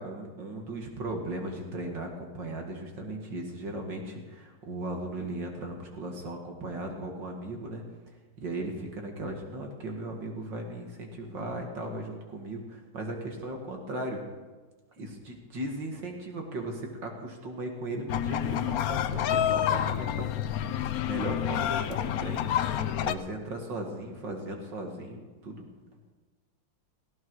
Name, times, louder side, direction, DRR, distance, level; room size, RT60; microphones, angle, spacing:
voice 1, 0.0-7.8 8.4-14.2 15.0-20.3 21.0-25.7, right 1 dB, 65° right, 2 dB, 2.6 m, -37 dB
sound 1, 18.1-23.1, left 10 dB, 65° left, 0.9 m, -28 dB
18.0 x 16.0 x 4.8 m, 1.3 s
omnidirectional pair, 2.2 m